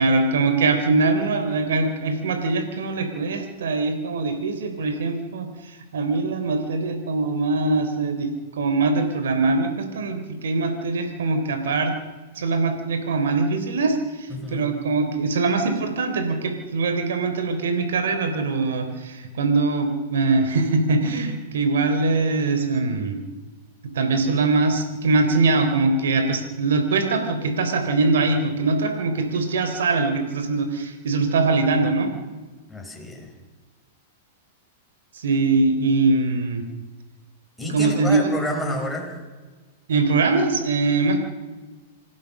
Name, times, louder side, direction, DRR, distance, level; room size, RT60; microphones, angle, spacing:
voice 1, 0.0-8.3 8.6-11.9 12.3-23.2 23.8-32.1 35.1-36.6 37.7-38.3 39.9-41.2, right 3 dB, 85° right, 7 dB, 3.5 m, -22 dB
voice 2, 14.3-14.7 32.7-33.3 37.6-39.2, left 1 dB, ahead, -2 dB, 5.6 m, -29 dB
26.5 x 15.5 x 6.6 m, 1.3 s
hypercardioid pair, 130°, 0 cm